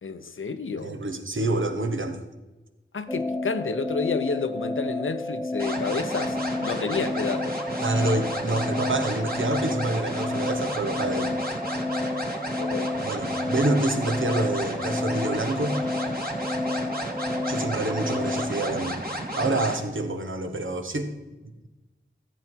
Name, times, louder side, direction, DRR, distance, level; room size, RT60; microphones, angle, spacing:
voice 1, 0.0-1.0 2.9-7.6 12.6-12.9, left 4 dB, 85° left, 0.8 m, -30 dB
voice 2, 0.8-2.2 7.8-11.4 13.0-15.8 17.5-19.0 19.3-21.1, right 2 dB, 80° right, 1.3 m, -27 dB
sound 1, 3.1-18.8, left 2 dB, 5° left, 0.7 m, -31 dB
sound 2, 5.6-19.8, right 1 dB, 50° right, 2.5 m, -33 dB
14.0 x 8.0 x 4.6 m
wide cardioid pair, 60°, 20 cm